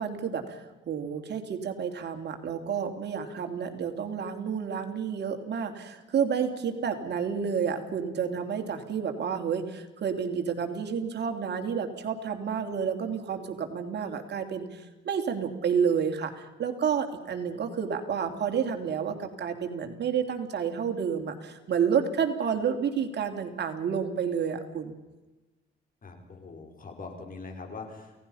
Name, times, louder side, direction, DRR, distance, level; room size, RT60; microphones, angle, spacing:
voice 1, 0.0-25.0, right 7 dB, 60° right, 5 dB, 3.0 m, -30 dB
voice 2, 26.0-28.2, left 4 dB, 45° left, 4 dB, 5.4 m, -42 dB
28.5 x 18.0 x 5.7 m, 1.1 s
cardioid pair, 90°, 20 cm